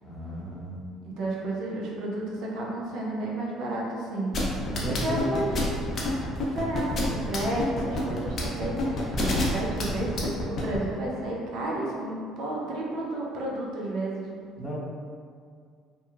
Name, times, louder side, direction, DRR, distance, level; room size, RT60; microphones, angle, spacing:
voice 1, 0.0-0.7 4.6-5.4 14.6-14.7, equal, 15° left, -6 dB, 0.8 m, -34 dB
voice 2, 1.0-4.3 4.9-5.6 6.4-14.1, right 1 dB, 65° right, -3 dB, 0.5 m, -31 dB
sound 1, 4.3-10.8, left 2 dB, 50° left, 0.5 m, -28 dB
2.8 x 2.2 x 2.3 m, 2.2 s
hypercardioid pair, 65°, 0 cm